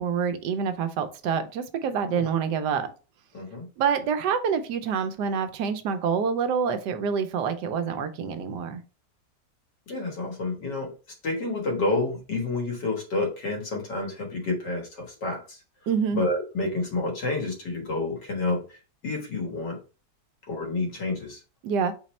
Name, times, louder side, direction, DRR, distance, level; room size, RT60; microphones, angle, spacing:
voice 1, 0.0-2.9 3.8-8.8 15.9-16.2 21.6-21.9, right 6 dB, 80° right, 1.2 m, -27 dB
voice 2, 3.3-3.7 9.9-10.9 11.2-15.6 16.2-18.6 19.0-19.8 20.5-21.4, left 2 dB, 85° left, 2.1 m, -29 dB
4.1 x 3.1 x 4.2 m
omnidirectional pair, 1.8 m